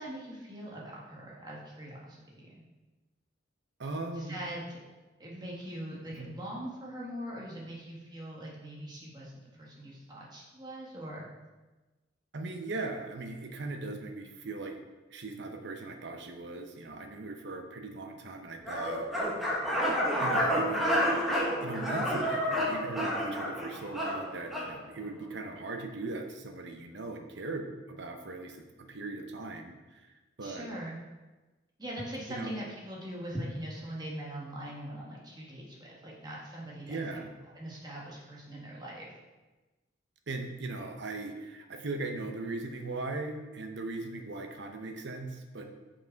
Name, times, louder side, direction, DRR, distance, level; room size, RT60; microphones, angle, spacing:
voice 1, 0.0-2.7 4.2-4.8 5.2-9.3 9.6-11.3 30.4-31.0 31.8-37.0 37.5-39.1, right 1 dB, 20° right, -4 dB, 1.4 m, -41 dB
voice 2, 3.8-4.4 6.1-6.3 12.3-14.8 15.1-19.1 20.2-30.1 30.4-30.7 32.3-32.5 36.9-37.3 40.3-45.6, right 3 dB, 60° right, 5 dB, 0.8 m, -39 dB
sound 1, 18.6-24.7, equal, ahead, 1.2 m, -30 dB
5.9 x 5.1 x 4.6 m, 1.2 s
head